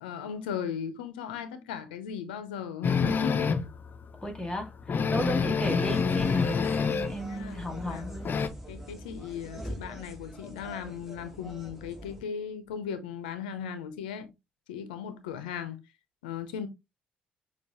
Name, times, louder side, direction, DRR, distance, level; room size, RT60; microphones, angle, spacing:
voice 1, 0.0-3.5 7.2-8.0 8.7-14.3 14.7-15.8 16.2-16.7, left 7 dB, 85° left, 0.6 m, -37 dB
sound 1, 2.8-3.8 4.2-4.3 4.6-4.7 4.9-7.2 7.5-8.5, left 5 dB, 45° left, 0.6 m, -27 dB
voice 2, 4.2-8.3, equal, 15° left, 2.0 m, -35 dB
sound 2, 5.6-12.2, equal, 5° right, 1.6 m, -44 dB
6.6 x 2.4 x 2.9 m
hypercardioid pair, 50°, 5 cm